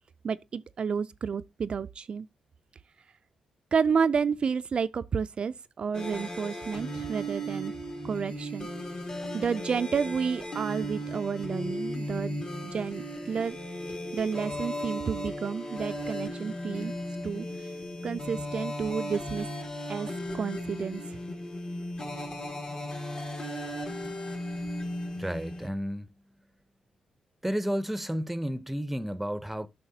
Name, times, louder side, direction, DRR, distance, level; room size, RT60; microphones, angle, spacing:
voice 1, 0.2-2.3 3.7-7.7 8.0-8.7 9.3-13.6 13.9-16.9 17.2-17.7 18.0-19.5 19.9-20.1 20.3-21.0, right 6 dB, 55° right, 0.4 m, -31 dB
sound 1, 5.9-25.7, equal, 45° left, 2.5 m, -36 dB
voice 2, 25.2-26.1 27.4-29.7, equal, 5° right, 0.7 m, -32 dB
9.6 x 5.8 x 2.7 m
supercardioid pair, 55°, 2 cm